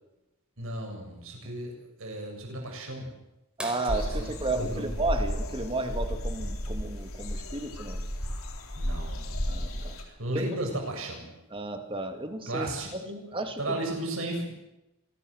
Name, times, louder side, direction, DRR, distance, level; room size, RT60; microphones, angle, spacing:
voice 1, 0.6-3.1 4.1-4.9 8.8-11.3 12.5-13.2 13.6-14.4, right 1 dB, 70° right, 2 dB, 7.6 m, -35 dB
sound 1, 3.6-6.0 8.0-8.1 10.3-10.4 12.1-12.4 13.2-13.3, equal, 5° right, 4.6 m, -44 dB
voice 2, 3.6-8.0 9.5-10.0 11.5-13.0 13.3-13.6, right 2 dB, 25° right, 6 dB, 2.5 m, -33 dB
sound 2, 3.9-10.0, equal, 80° left, 3.7 m, -33 dB
25.5 x 20.0 x 6.7 m, 0.93 s
head